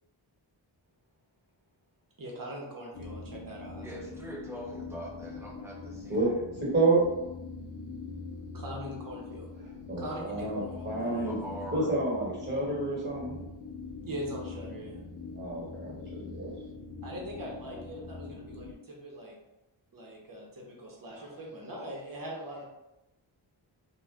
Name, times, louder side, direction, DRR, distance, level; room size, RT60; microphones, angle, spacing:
voice 1, 2.2-4.2 8.5-9.5 10.0-11.3 14.0-15.1 17.0-19.4 19.9-22.6, right 1 dB, 45° right, -2 dB, 0.9 m, -42 dB
sound 1, 2.9-18.7, left 4 dB, 50° left, 0.4 m, -43 dB
voice 2, 3.8-6.4 10.9-11.9, equal, 5° right, -4 dB, 0.7 m, -43 dB
voice 3, 6.1-7.0 9.9-11.3 11.7-13.4 15.3-16.5, right 2 dB, 25° right, -5 dB, 1.5 m, -29 dB
2.4 x 2.3 x 3.3 m, 0.95 s
wide cardioid pair, 90°, 47 cm